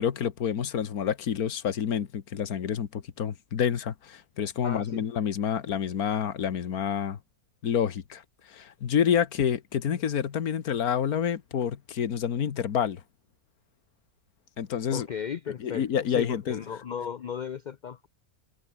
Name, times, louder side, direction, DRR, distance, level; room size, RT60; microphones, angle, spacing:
voice 1, 0.0-7.2 7.6-13.0 14.6-15.1 15.6-16.6, left 8 dB, 80° left, 1.8 m, -28 dB
voice 2, 4.6-5.1 14.9-18.1, left 7 dB, 55° left, 0.5 m, -35 dB
omnidirectional pair, 1.5 m